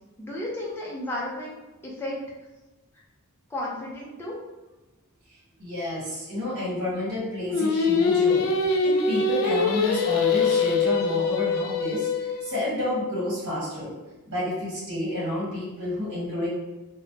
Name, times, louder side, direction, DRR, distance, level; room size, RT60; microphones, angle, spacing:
voice 1, 0.2-1.6 1.8-2.2 3.5-4.3, left 1 dB, 10° left, -5 dB, 0.4 m, -33 dB
voice 2, 5.6-8.5 8.8-13.9 14.2-16.5, left 1 dB, 55° right, -7 dB, 1.3 m, -29 dB
Singing, 7.5-12.7, left 4 dB, 80° left, 0.4 m, -23 dB
3.1 x 2.0 x 2.7 m, 1.1 s
head